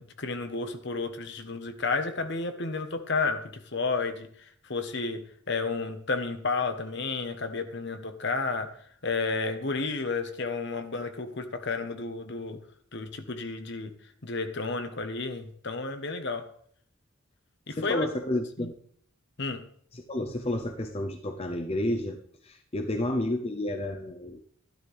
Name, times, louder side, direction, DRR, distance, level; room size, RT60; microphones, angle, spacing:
voice 1, 0.0-4.3 4.7-8.7 9.0-12.6 12.9-13.9 14.2-16.5 17.7-18.1 18.6-18.7 19.4-19.6, left 4 dB, 60° left, 8 dB, 1.3 m, -31 dB
voice 2, 17.7-18.7 19.9-22.2 22.4-24.4, left 1 dB, 30° left, 5 dB, 0.7 m, -31 dB
13.0 x 12.0 x 3.5 m, 0.62 s
head